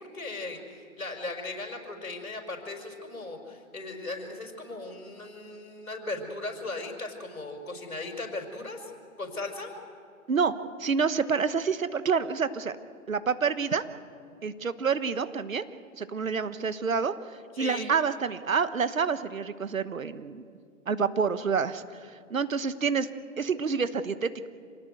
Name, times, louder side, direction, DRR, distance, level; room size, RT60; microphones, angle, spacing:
voice 1, 0.0-8.9 9.2-9.7 17.5-17.9, left 2 dB, 80° left, 3 dB, 5.4 m, -37 dB
voice 2, 10.8-12.7 13.1-13.8 14.4-15.7 16.0-17.1 17.6-20.4 20.9-23.1 23.4-24.3, right 5 dB, 70° right, 13 dB, 1.3 m, -28 dB
27.0 x 18.5 x 8.0 m, 2.2 s
figure-of-eight pair, 160°, 42 cm